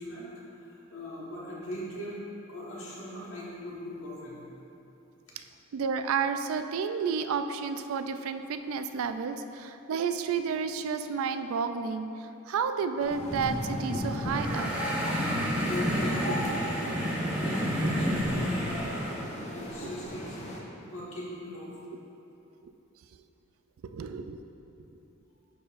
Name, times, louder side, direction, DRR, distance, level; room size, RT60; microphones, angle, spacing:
voice 1, 0.0-2.2 2.5-4.4 15.5-16.1 16.4-16.6 17.3-19.2 19.5-20.4 20.8-21.7, left 1 dB, 75° left, -5 dB, 1.4 m, -40 dB
voice 2, 5.7-14.7 16.2-16.3 16.8-17.4 19.8-19.9 22.6-22.7 23.8-24.4, right 6 dB, 75° right, 9 dB, 0.3 m, -31 dB
sound 1, 13.0-20.6, equal, 35° left, 0.7 m, -36 dB
sound 2, 14.2-19.2, equal, 5° right, 0.7 m, -30 dB
10.5 x 4.4 x 2.5 m, 3.0 s
head